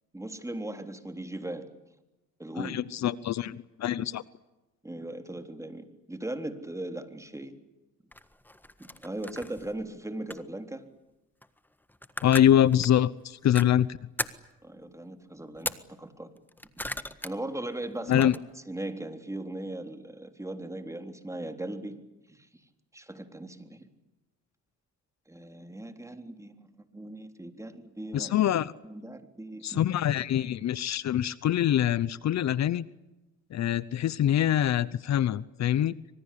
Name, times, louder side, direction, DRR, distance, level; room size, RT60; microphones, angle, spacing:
voice 1, 0.1-1.7 2.4-2.8 4.8-7.5 8.8-10.8 14.6-16.3 17.2-18.4 18.7-22.0 22.3-22.5 22.9-23.9 25.3-26.7 26.9-28.3 28.8-29.9, right 1 dB, 10° right, 7 dB, 3.5 m, -38 dB
voice 2, 2.6-4.2 12.2-13.9 18.1-18.3 28.1-28.7 29.6-32.8 33.5-35.9, left 11 dB, 65° left, 19 dB, 0.9 m, -24 dB
sound 1, 8.1-9.9 10.3-10.6 11.4-11.6 11.9-12.9 13.5-13.7 14.2-14.5 15.6-15.8 16.4-17.3 17.7-18.4, left 1 dB, 5° left, 1.5 m, -37 dB
26.0 x 24.0 x 8.6 m, 1.0 s
cardioid pair, 90°, 30 cm